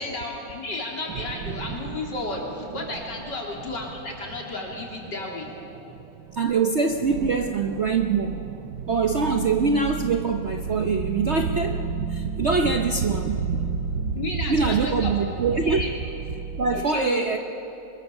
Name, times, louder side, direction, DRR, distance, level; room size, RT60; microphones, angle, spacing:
voice 1, 0.0-5.5 14.1-15.1 15.6-15.9 16.7-17.2, left 2 dB, 65° left, -1 dB, 4.0 m, -32 dB
sound 1, 0.7-16.8, right 6 dB, 85° right, 1.6 m, -33 dB
voice 2, 6.3-8.4 8.9-14.2 14.5-15.8 16.6-17.4, right 4 dB, 50° right, 5 dB, 0.8 m, -24 dB
24.0 x 21.5 x 7.1 m, 3.0 s
omnidirectional pair, 2.1 m